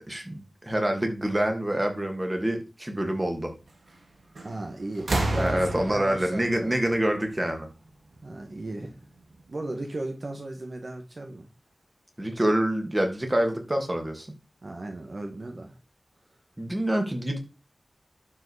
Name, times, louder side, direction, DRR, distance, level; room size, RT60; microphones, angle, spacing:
voice 1, 0.1-3.5 5.3-7.7 12.2-14.3 16.6-17.4, right 1 dB, 25° right, 2.7 m, -26 dB
sound 1, 4.3-4.6 5.0-7.7 8.8-8.9, right 2 dB, 85° right, 2.3 m, -31 dB
voice 2, 4.4-6.8 8.2-9.0 9.5-11.5 14.6-15.8, right 2 dB, 55° right, 1.6 m, -36 dB
11.5 x 5.0 x 4.9 m
wide cardioid pair, 60°, 0 cm